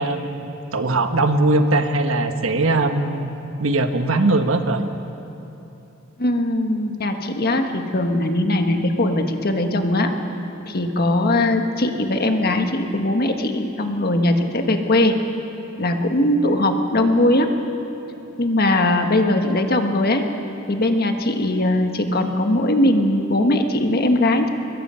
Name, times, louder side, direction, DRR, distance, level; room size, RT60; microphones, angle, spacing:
voice 1, 0.0-3.3 3.6-4.8, right 2 dB, 75° right, 7 dB, 1.3 m, -20 dB
voice 2, 6.2-10.1 10.6-15.1 15.8-17.5 18.4-20.2 20.7-24.5, left 1 dB, 50° left, 5 dB, 1.5 m, -20 dB
22.0 x 21.0 x 5.7 m, 2.9 s
head